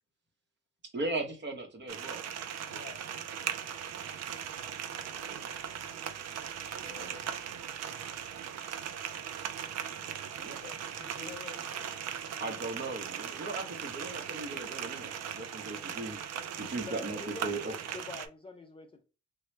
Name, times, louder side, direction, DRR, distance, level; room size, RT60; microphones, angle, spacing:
voice 1, 0.9-2.2 5.2-5.5 6.8-7.1 10.4-10.6 12.4-16.2 16.6-17.7, right 2 dB, 35° right, 0.9 m, -38 dB
sound 1, 1.9-18.3, right 9 dB, 60° right, 0.5 m, -39 dB
voice 2, 2.7-3.0 6.8-7.6 10.5-11.9, left 5 dB, 70° left, 0.7 m, -49 dB
voice 3, 16.9-19.0, left 3 dB, 20° left, 0.4 m, -46 dB
3.0 x 2.3 x 3.1 m
cardioid pair, 90°, 30 cm